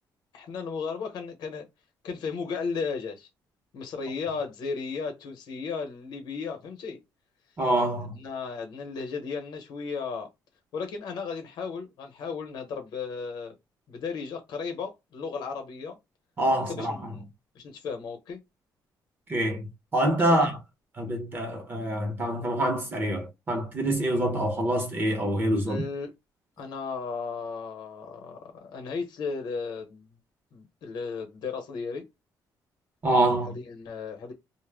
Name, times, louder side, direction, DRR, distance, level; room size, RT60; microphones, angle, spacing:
voice 1, 0.3-1.7 2.0-3.3 3.7-7.0 8.1-10.3 10.7-13.5 13.9-16.0 16.7-17.2 17.5-18.4 25.7-26.1 26.6-30.2 30.5-32.0 33.4-34.3, left 5 dB, 65° left, 0.8 m, -35 dB
voice 2, 7.6-8.2 16.4-17.1 19.3-20.6 21.0-25.8 33.0-33.6, right 1 dB, 25° right, 0.7 m, -26 dB
2.1 x 2.0 x 3.3 m
cardioid pair, 160°, 8 cm